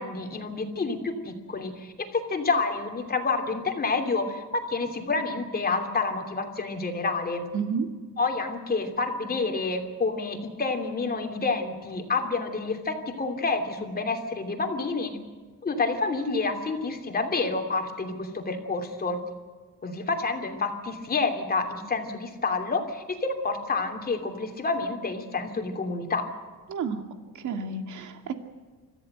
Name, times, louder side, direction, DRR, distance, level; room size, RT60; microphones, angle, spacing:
voice 1, 0.0-7.5 8.2-15.1 15.6-19.2 19.8-26.3, left 3 dB, 25° left, 4 dB, 2.9 m, -28 dB
voice 2, 7.5-7.9 26.7-27.0 27.3-28.3, right 5 dB, 55° right, 6 dB, 2.3 m, -30 dB
26.5 x 14.5 x 8.0 m, 1.4 s
cardioid pair, 145°, 36 cm